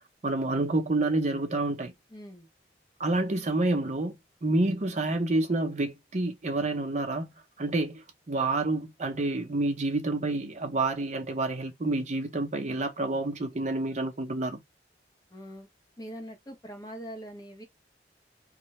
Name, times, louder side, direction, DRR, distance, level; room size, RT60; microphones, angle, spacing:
voice 1, 0.2-1.9 3.0-4.1 4.4-7.3 7.6-14.6, right 2 dB, 45° right, 0.6 m, -28 dB
voice 2, 2.1-2.5 15.3-15.7 16.0-17.7, equal, 20° left, 0.7 m, -42 dB
2.2 x 2.0 x 2.9 m
head